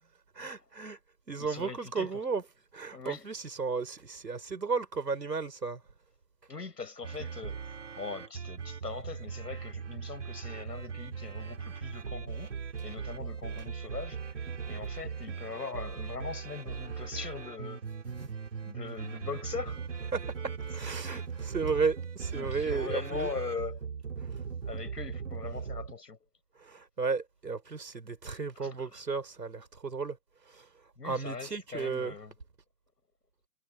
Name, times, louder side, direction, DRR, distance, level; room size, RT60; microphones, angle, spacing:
voice 1, 0.3-1.0 1.3-2.4 2.7-5.8 18.2-18.3 20.1-23.3 24.2-24.4 26.6-30.2 30.5-30.7 31.0-32.2, right 4 dB, 85° right, 4.3 m, -34 dB
voice 2, 1.4-2.1 2.9-3.3 6.5-12.6 12.8-14.2 14.7-17.8 18.7-19.8 22.3-23.8 24.7-26.2 28.6-29.0 31.0-32.3, left 4 dB, 80° left, 7.8 m, -40 dB
sound 1, 7.0-25.9, right 6 dB, 50° right, 3.6 m, -39 dB
hypercardioid pair, 165°, 48 cm